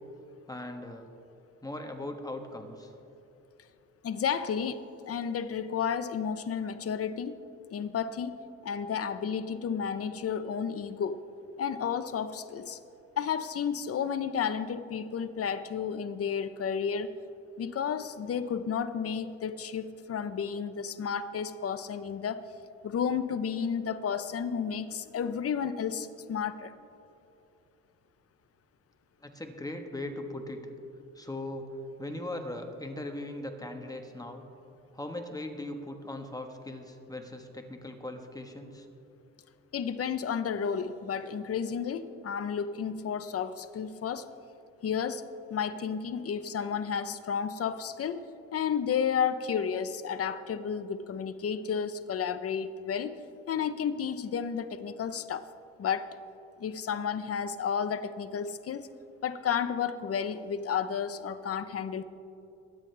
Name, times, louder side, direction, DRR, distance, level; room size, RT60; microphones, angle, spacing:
voice 1, 0.5-1.1 1.6-2.9 29.2-30.6 31.1-34.5 34.9-38.9, left 1 dB, 10° left, 4 dB, 1.4 m, -39 dB
voice 2, 4.0-4.8 5.1-7.4 7.7-8.4 8.6-11.2 11.6-12.8 13.2-17.1 17.6-22.5 22.8-26.7 39.7-44.3 44.8-45.2 45.5-48.2 48.5-53.1 53.5-55.5 55.8-56.1 56.6-58.9 59.2-62.0, left 7 dB, 50° left, 12 dB, 0.8 m, -32 dB
22.5 x 10.0 x 3.4 m, 2.8 s
cardioid pair, 90°, 30 cm